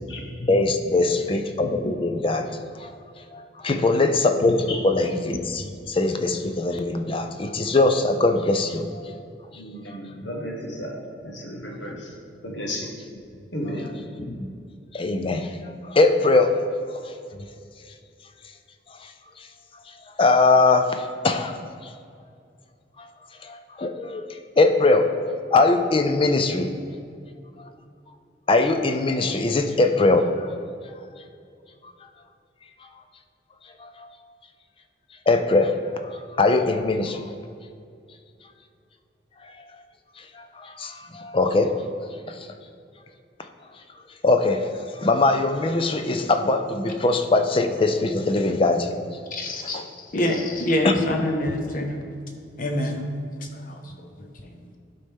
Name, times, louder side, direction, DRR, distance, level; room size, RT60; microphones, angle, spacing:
voice 1, 0.4-2.5 2.8-2.9 3.3-9.0 9.9-10.0 14.2-14.5 14.9-15.5 15.8-16.7 20.2-21.5 23.4-24.2 24.6-25.2 25.5-26.7 28.5-30.5 33.8-34.1 35.3-35.7 36.0-37.2 40.6-41.8 42.3-42.4 44.2-48.9 49.7-49.8 50.8-50.9, left 3 dB, 30° left, 6 dB, 0.4 m, -21 dB
voice 2, 9.5-10.9 11.2-12.1 12.4-12.9 13.5-13.9, left 1 dB, 80° left, 0 dB, 1.4 m, -33 dB
voice 3, 49.3-52.0 52.6-53.1 53.5-54.8, left 1 dB, 45° left, 3 dB, 0.8 m, -27 dB
11.5 x 4.2 x 3.6 m, 2.4 s
head